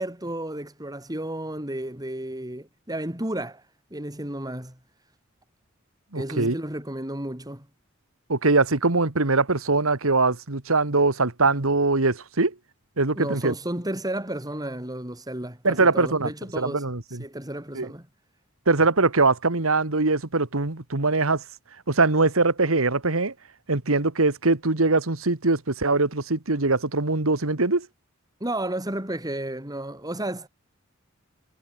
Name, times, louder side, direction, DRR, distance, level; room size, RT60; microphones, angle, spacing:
voice 1, 0.0-3.6 3.9-4.8 6.1-7.7 13.1-16.8 17.2-18.1 28.4-30.5, right 1 dB, 20° right, 5.0 m, -32 dB
voice 2, 6.1-6.6 8.3-12.5 13.0-13.5 15.6-17.2 17.7-17.9 18.7-21.4 21.9-23.3 23.7-27.9, right 3 dB, 75° right, 1.9 m, -22 dB
head